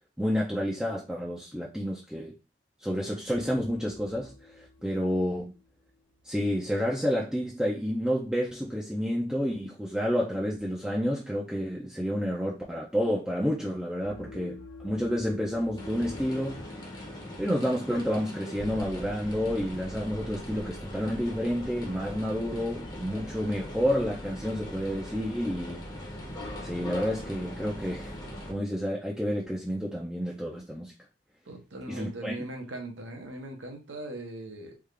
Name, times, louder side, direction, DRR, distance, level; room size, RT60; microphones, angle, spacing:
voice 1, 0.2-2.3 2.8-5.5 6.2-16.6 17.4-25.8 26.6-28.1 28.5-30.9 31.9-32.3, equal, 5° right, 0.5 m, -30 dB
sound 1, 3.3-6.4 14.0-18.0, left 4 dB, 90° left, 0.5 m, -49 dB
sound 2, 15.8-28.5, left 1 dB, 20° left, 0.8 m, -40 dB
voice 2, 31.4-34.7, right 2 dB, 80° right, 1.0 m, -39 dB
3.6 x 2.4 x 3.3 m
head